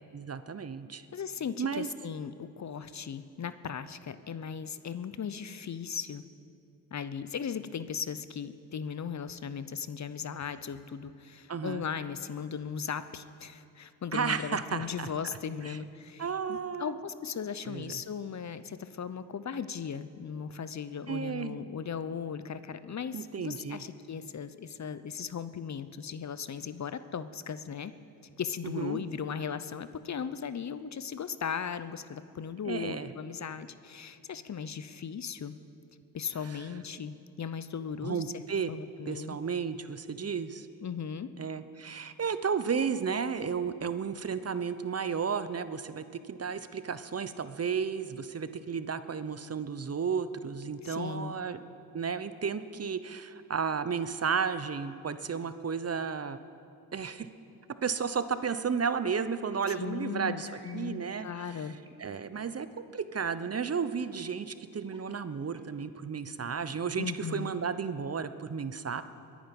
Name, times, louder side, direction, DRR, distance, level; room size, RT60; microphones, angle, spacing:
voice 1, 0.1-1.0 1.6-1.9 11.5-11.8 14.1-15.1 15.6-15.8 16.2-17.0 17.7-17.9 21.1-21.6 23.1-23.8 28.6-29.0 32.7-33.1 38.0-38.7 39.1-40.7 41.4-51.6 51.9-56.4 56.9-57.3 57.8-60.5 60.7-61.7 62.0-69.0, right 6 dB, 35° right, 12 dB, 0.9 m, -33 dB
voice 2, 1.1-6.2 6.9-27.9 28.2-35.5 36.1-38.4 38.7-39.4 40.8-41.3 50.8-51.4 59.7-61.8 67.0-67.5, left 7 dB, 40° left, 13 dB, 0.8 m, -37 dB
sound 1, 59.5-59.7 60.4-61.1 61.8-62.5 64.0-64.3 64.8-65.9 66.4-66.8, right 1 dB, 10° right, 2.5 m, -55 dB
22.0 x 10.0 x 5.4 m, 2.6 s
supercardioid pair, 50°, 42 cm